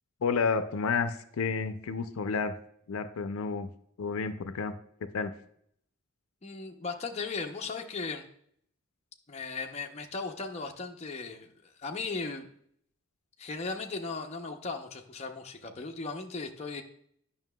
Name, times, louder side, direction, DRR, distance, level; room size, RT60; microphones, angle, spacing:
voice 1, 0.2-2.6 2.9-3.7 4.0-4.7 5.1-5.3, left 5 dB, 75° left, 10 dB, 0.5 m, -30 dB
voice 2, 6.4-8.2 9.3-11.5 11.8-12.5 13.4-16.8, left 4 dB, 30° left, 3 dB, 0.6 m, -37 dB
9.1 x 5.7 x 2.2 m, 0.67 s
head